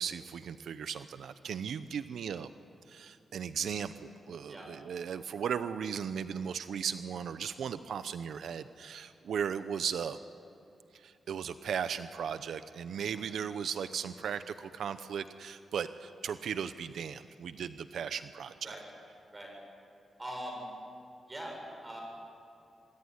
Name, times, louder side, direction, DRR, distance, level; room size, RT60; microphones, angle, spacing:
voice 1, 0.0-2.5 2.9-10.2 10.9-18.7, right 7 dB, 85° right, 11 dB, 0.7 m, -37 dB
voice 2, 20.2-20.7 21.3-22.0, right 1 dB, 20° right, 0 dB, 7.1 m, -42 dB
26.5 x 20.5 x 9.9 m, 2.6 s
wide cardioid pair, 150°, 0 cm